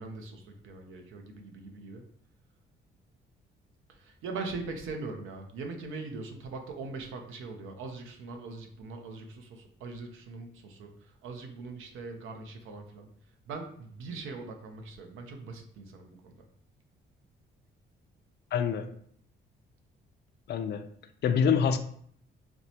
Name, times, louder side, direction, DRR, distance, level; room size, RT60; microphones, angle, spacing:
voice 1, 0.0-2.0 3.9-10.9 11.2-13.1 13.5-16.4, right 3 dB, 85° right, 4 dB, 0.6 m, -41 dB
voice 2, 18.5-18.9 20.5-20.9 21.2-21.8, left 7 dB, 60° left, 9 dB, 0.4 m, -26 dB
4.3 x 2.1 x 2.7 m, 0.62 s
cardioid pair, 90°, 20 cm